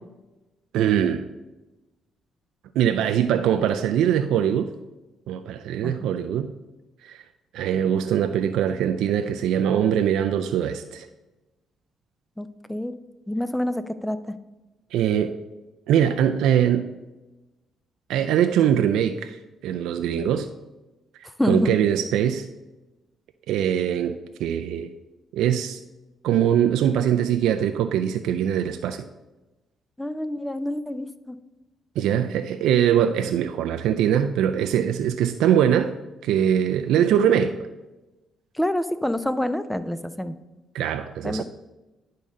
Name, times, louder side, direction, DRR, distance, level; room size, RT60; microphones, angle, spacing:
voice 1, 0.7-1.2 2.8-4.7 5.3-6.5 7.0-7.2 7.5-11.1 14.9-15.3 15.9-16.9 18.1-19.4 19.6-20.5 21.2-22.5 23.5-24.9 25.3-25.8 26.2-29.0 32.0-35.9 36.2-37.6 40.7-41.4, right 9 dB, 85° right, 7 dB, 0.3 m, -22 dB
voice 2, 12.4-12.9 13.3-14.2 21.4-21.8 30.0-31.4 38.6-40.4 41.2-41.4, left 1 dB, 5° left, 12 dB, 0.5 m, -27 dB
10.0 x 3.7 x 5.2 m, 1.1 s
cardioid pair, 90°, 0 cm